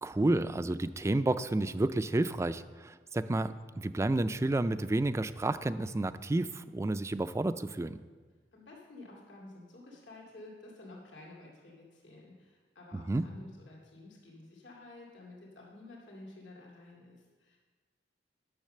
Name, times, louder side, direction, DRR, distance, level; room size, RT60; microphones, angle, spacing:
voice 1, 0.0-8.0 12.9-13.3, right 2 dB, 15° right, 13 dB, 0.3 m, -30 dB
voice 2, 8.5-17.6, left 2 dB, 80° left, -3 dB, 2.3 m, -51 dB
10.5 x 6.6 x 6.6 m, 1.4 s
head